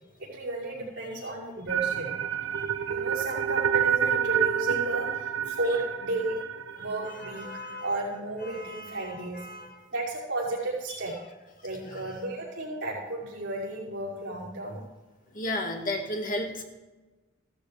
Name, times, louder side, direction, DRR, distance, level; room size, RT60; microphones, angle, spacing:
voice 1, 0.2-2.1 2.9-6.4 6.8-7.5 7.8-9.5 9.9-11.1 11.6-14.8, right 2 dB, 60° right, -7 dB, 5.6 m, -33 dB
voice 2, 1.0-1.3 2.5-2.7 6.7-8.0 8.4-9.9 10.9-11.0 11.8-12.0 15.3-16.6, left 1 dB, 40° left, 2 dB, 1.9 m, -36 dB
sound 1, 1.7-7.8, right 9 dB, 85° right, 0.8 m, -29 dB
15.5 x 14.0 x 3.4 m, 1.2 s
head